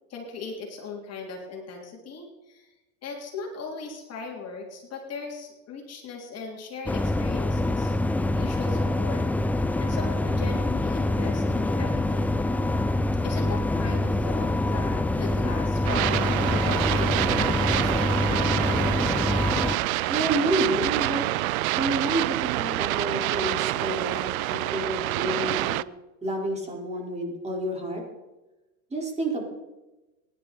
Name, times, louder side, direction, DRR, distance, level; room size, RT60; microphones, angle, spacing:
voice 1, 0.1-2.7 3.0-7.9 8.3-9.2 9.8-12.4 13.2-18.2, left 4 dB, 35° left, 1 dB, 3.4 m, -38 dB
sound 1, 6.9-19.8, left 2 dB, 5° left, 0.4 m, -25 dB
sound 2, 15.8-25.8, right 17 dB, 75° right, 0.6 m, -27 dB
voice 2, 20.1-21.2 21.8-25.7 26.2-28.0 28.9-29.4, right 1 dB, 15° right, -1 dB, 4.9 m, -29 dB
25.0 x 11.0 x 4.4 m, 1.1 s
hypercardioid pair, 105°, 42 cm